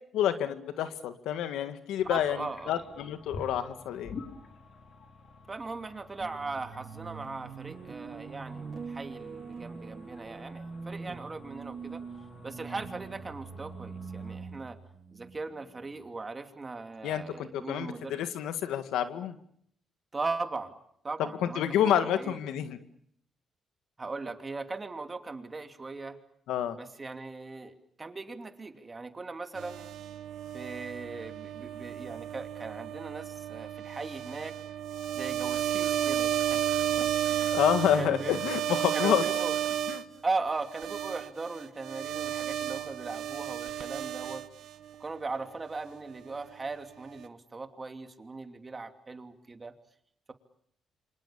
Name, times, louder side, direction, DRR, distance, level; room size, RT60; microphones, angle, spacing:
voice 1, 0.1-4.1 17.0-19.4 21.2-22.8 26.5-26.8 37.5-39.2 39.9-40.0, left 10 dB, 85° left, 10 dB, 2.0 m, -29 dB
sound 1, 2.0-14.4, left 4 dB, 60° left, 4.4 m, -50 dB
voice 2, 2.1-2.8 5.5-12.0 12.4-14.8 15.1-18.2 20.1-20.7 21.0-21.6 22.0-22.4 24.0-26.2 26.8-29.9 30.5-34.5 35.1-36.6 37.0-37.5 37.9-38.4 38.9-39.6 40.2-44.4 45.0-49.7, right 3 dB, 25° right, 7 dB, 2.9 m, -38 dB
sound 2, 6.2-16.1, right 5 dB, 45° right, 2.9 m, -43 dB
sound 3, 29.5-40.0 40.6-44.9, right 11 dB, 80° right, 1.4 m, -32 dB
28.0 x 25.5 x 7.1 m, 0.68 s
cardioid pair, 90°, 0 cm